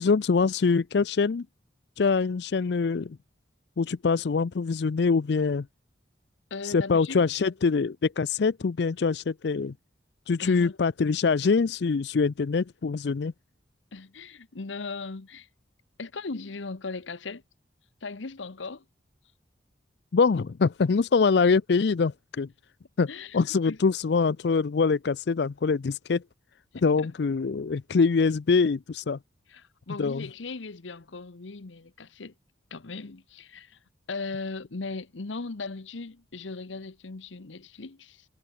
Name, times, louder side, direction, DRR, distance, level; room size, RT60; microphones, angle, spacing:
voice 1, 0.0-1.5 2.0-3.2 3.8-5.7 6.6-9.7 10.3-13.3 20.1-22.5 23.0-26.2 26.8-29.2 30.0-30.3, left 4 dB, 60° left, 0.4 m, -24 dB
voice 2, 6.5-7.3 10.4-10.8 13.9-15.5 16.0-17.4 18.0-18.8 23.1-23.4 23.6-23.8 26.7-27.1 29.5-32.3 32.7-33.8 34.1-38.2, left 3 dB, 85° left, 1.0 m, -38 dB
head